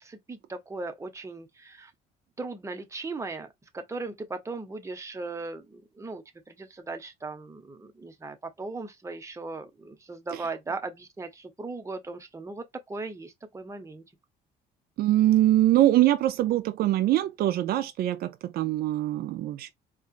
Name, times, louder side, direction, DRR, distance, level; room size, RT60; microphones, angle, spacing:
voice 1, 0.0-1.9 2.4-3.5 3.7-14.0, right 3 dB, 15° right, 0.9 m, -38 dB
voice 2, 15.0-19.7, right 14 dB, 65° right, 0.4 m, -23 dB
4.4 x 2.3 x 2.4 m
cardioid pair, 110°, 17 cm